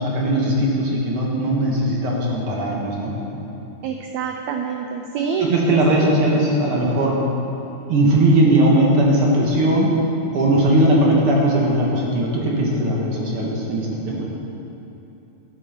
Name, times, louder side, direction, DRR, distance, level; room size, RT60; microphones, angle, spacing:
voice 1, 0.0-3.1 5.4-7.2 7.9-9.9 10.3-14.2, right 1 dB, 50° right, -3 dB, 2.1 m, -19 dB
voice 2, 3.8-6.1, right 6 dB, 85° right, 3 dB, 1.6 m, -26 dB
12.0 x 8.8 x 5.8 m, 2.9 s
omnidirectional pair, 4.0 m